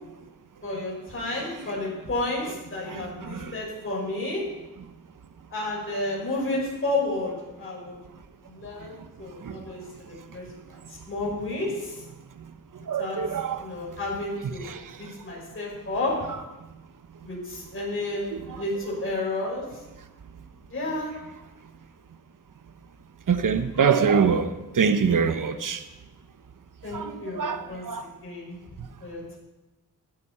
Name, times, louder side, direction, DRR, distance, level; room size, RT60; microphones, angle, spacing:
voice 1, 0.6-4.4 5.5-8.0 8.5-12.0 13.0-13.2 13.6-14.6 15.0-16.2 17.2-19.6 20.7-21.1 26.8-28.6 29.0-29.4, left 2 dB, 35° left, 5.8 m, -31 dB
voice 2, 2.9-3.5 9.4-9.6 12.9-13.6 14.7-14.8 23.3-25.8 26.9-28.1, right 6 dB, 60° right, 1.0 m, -24 dB
15.0 x 11.5 x 4.4 m
cardioid pair, 80°, 37 cm